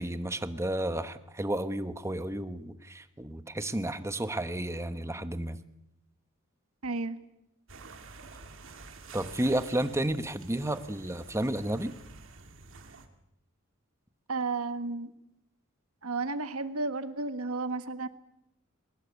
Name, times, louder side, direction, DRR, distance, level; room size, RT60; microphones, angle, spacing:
voice 1, 0.0-5.6 9.1-12.0, right 1 dB, 15° right, 11 dB, 1.1 m, -32 dB
voice 2, 6.8-7.2 14.3-15.1 16.0-18.1, right 3 dB, 90° right, 10 dB, 1.5 m, -32 dB
sound 1, 7.7-13.1, right 3 dB, 65° right, 2.4 m, -49 dB
22.5 x 20.0 x 8.2 m, 0.85 s
head